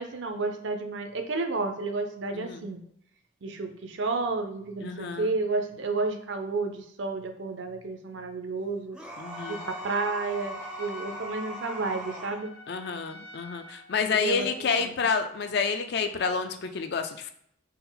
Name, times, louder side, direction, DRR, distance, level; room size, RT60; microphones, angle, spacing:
voice 1, 0.0-2.8 3.4-9.0 9.5-12.5 14.2-14.9, right 3 dB, 65° right, 6 dB, 0.5 m, -31 dB
voice 2, 2.3-2.6 4.8-5.3 9.2-9.7 12.7-17.3, left 5 dB, 55° left, 7 dB, 0.4 m, -29 dB
sound 1, 8.9-12.4, equal, 5° right, 0.4 m, -39 dB
Trumpet, 9.2-14.1, left 2 dB, 85° left, 0.7 m, -47 dB
4.2 x 2.1 x 3.9 m, 0.69 s
head